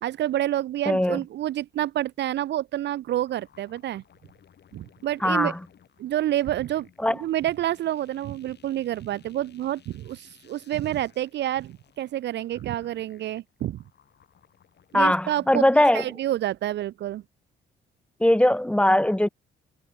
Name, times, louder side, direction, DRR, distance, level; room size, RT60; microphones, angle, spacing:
voice 1, 0.0-4.0 4.7-5.5 6.0-13.8 14.9-15.6 15.9-17.2, right 13 dB, 60° right, 0.4 m, -28 dB
voice 2, 0.9-1.2 5.2-5.6 7.0-7.2 14.9-16.0 18.2-19.3, left 1 dB, 5° left, 0.9 m, -20 dB
sound 1, 3.1-15.0, left 8 dB, 60° left, 6.8 m, -58 dB
cardioid pair, 90°, 20 cm